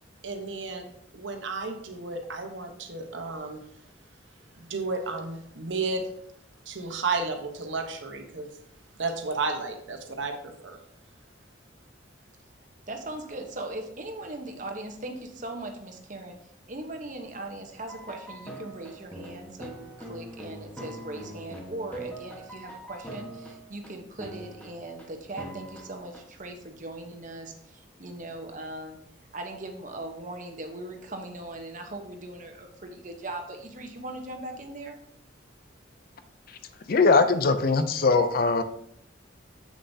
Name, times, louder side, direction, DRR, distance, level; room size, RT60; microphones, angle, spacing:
voice 1, 0.2-3.6 4.6-6.1 6.7-8.5 9.0-10.8, right 3 dB, 80° right, 4 dB, 1.1 m, -32 dB
voice 2, 12.9-16.4 16.7-29.0 29.3-35.0, right 2 dB, 45° right, 4 dB, 1.0 m, -39 dB
sound 1, 17.8-23.9 24.2-25.0 25.4-26.2, right 1 dB, 10° left, 1.2 m, -42 dB
voice 3, 36.9-38.6, left 4 dB, 50° left, 10 dB, 0.5 m, -21 dB
7.6 x 6.6 x 2.8 m, 0.69 s
head